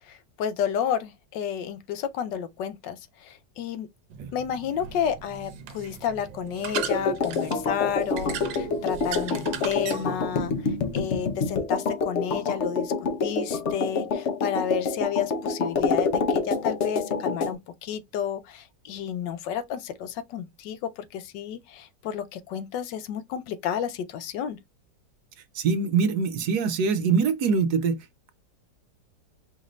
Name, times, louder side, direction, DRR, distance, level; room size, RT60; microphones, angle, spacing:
voice 1, 0.1-3.9 4.3-24.6, left 8 dB, 80° left, 1.3 m, -31 dB
sound 1, 4.1-11.0, right 8 dB, 85° right, 1.4 m, -38 dB
sound 2, 6.7-17.5, left 4 dB, 60° left, 0.8 m, -27 dB
voice 2, 25.5-28.0, right 5 dB, 70° right, 1.2 m, -23 dB
5.0 x 2.6 x 3.0 m
omnidirectional pair, 1.9 m